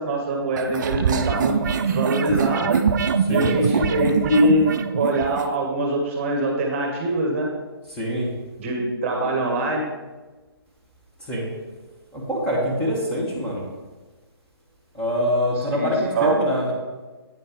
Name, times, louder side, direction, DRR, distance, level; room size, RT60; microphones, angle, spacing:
voice 1, 0.0-1.5 1.8-2.8 3.3-7.5 8.6-9.9 15.7-15.9 16.1-16.4, right 1 dB, 30° right, 1 dB, 1.2 m, -23 dB
sound 1, 0.6-5.5, right 6 dB, 50° right, 0.5 m, -23 dB
voice 2, 3.2-3.9 7.9-8.3 11.2-11.5 12.1-13.6 14.9-16.7, equal, 10° left, -6 dB, 1.1 m, -25 dB
8.5 x 4.2 x 5.0 m, 1.3 s
hypercardioid pair, 150°, 13 cm